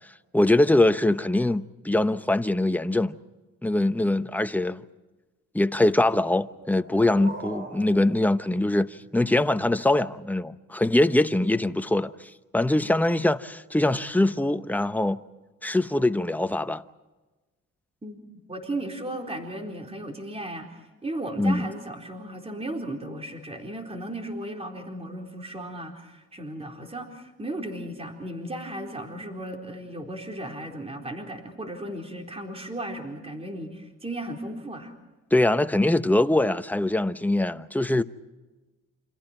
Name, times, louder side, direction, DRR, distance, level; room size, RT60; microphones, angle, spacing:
voice 1, 0.3-3.1 3.6-4.8 5.5-12.1 12.5-15.2 15.6-16.8 21.4-21.7 35.3-38.0, left 1 dB, 5° left, 0.9 m, -23 dB
sound 1, 6.4-9.4, right 2 dB, 40° right, 4.4 m, -42 dB
voice 2, 18.5-34.9, right 1 dB, 20° right, 4.1 m, -35 dB
29.0 x 27.0 x 4.5 m
cardioid pair, 90°, 30 cm